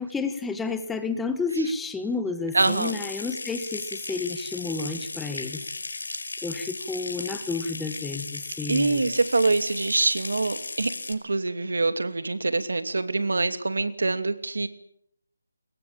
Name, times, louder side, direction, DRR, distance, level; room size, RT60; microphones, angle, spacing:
voice 1, 0.0-5.6 6.4-9.1, left 4 dB, 5° left, 9 dB, 1.2 m, -31 dB
voice 2, 2.5-3.0 8.7-14.7, right 3 dB, 75° right, 11 dB, 2.7 m, -25 dB
Water tap faucet / Sink (filling or washing) / Trickle dribble, 2.6-11.1, left 3 dB, 70° left, 5.1 m, -36 dB
25.0 x 22.0 x 8.9 m, 0.71 s
figure-of-eight pair, 165°, 0 cm